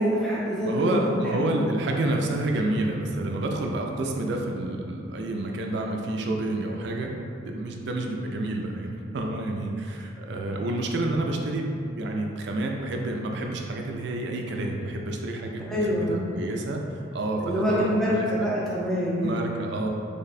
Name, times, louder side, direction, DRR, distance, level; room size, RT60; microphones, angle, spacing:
voice 1, 0.0-2.0 15.7-16.3 17.4-19.4, equal, ahead, -8 dB, 0.5 m, -26 dB
voice 2, 0.6-7.1 7.4-16.8 17.1-18.5 19.2-19.9, right 2 dB, 60° right, 1 dB, 0.4 m, -29 dB
3.3 x 2.2 x 3.9 m, 2.4 s
head